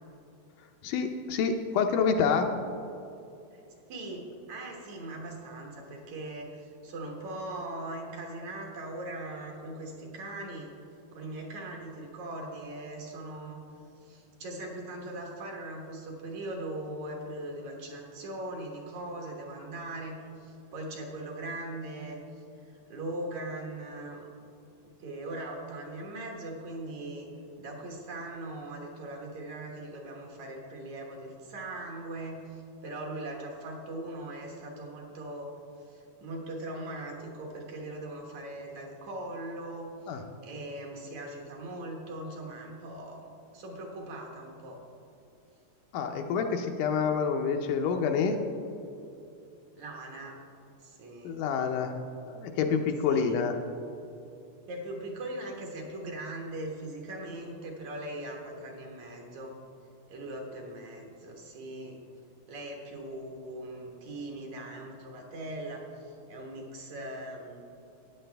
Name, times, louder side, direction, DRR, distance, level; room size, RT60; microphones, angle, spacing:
voice 1, 0.8-2.5 40.1-40.2 45.9-48.4 51.2-52.0 52.3-53.6, left 6 dB, 80° left, 4 dB, 2.1 m, -27 dB
voice 2, 3.9-10.7 11.1-13.6 14.0-24.3 24.8-27.3 27.6-35.5 35.8-44.8 49.7-50.5 50.8-51.4 53.1-53.4 54.7-59.5 60.1-62.0 62.5-67.6, right 1 dB, 60° right, 0 dB, 2.4 m, -40 dB
14.0 x 9.8 x 3.4 m, 2.7 s
omnidirectional pair, 3.9 m